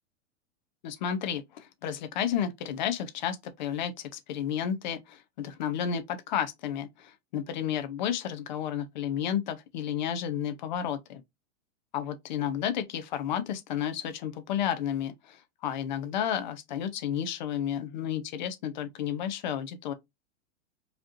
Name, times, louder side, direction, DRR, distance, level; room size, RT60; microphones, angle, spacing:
voice 1, 0.8-3.9 4.3-11.2 11.9-19.9, left 9 dB, 35° left, 0.6 m, -32 dB
4.9 x 3.0 x 2.5 m
supercardioid pair, 175°, 38 cm